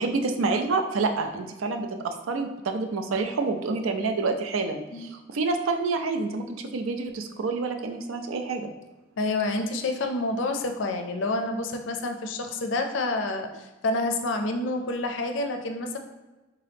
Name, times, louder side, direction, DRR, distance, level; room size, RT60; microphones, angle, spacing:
voice 1, 0.0-6.4 6.7-8.7, right 3 dB, 90° right, 6 dB, 0.4 m, -28 dB
voice 2, 9.2-16.0, left 2 dB, 65° left, 5 dB, 0.4 m, -28 dB
3.6 x 2.8 x 3.4 m, 1.1 s
head